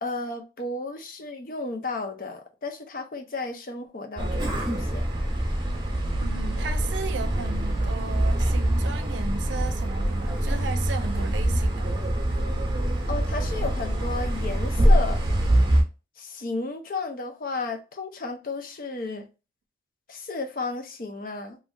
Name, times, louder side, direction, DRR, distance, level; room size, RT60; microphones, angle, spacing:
voice 1, 0.0-5.0 13.1-15.2 16.2-19.2 20.1-21.6, left 3 dB, 50° left, 0.5 m, -33 dB
sound 1, 4.2-15.8, right 1 dB, 25° right, 0.8 m, -24 dB
voice 2, 6.2-12.0, right 4 dB, 85° right, 0.5 m, -35 dB
3.1 x 2.6 x 2.2 m
head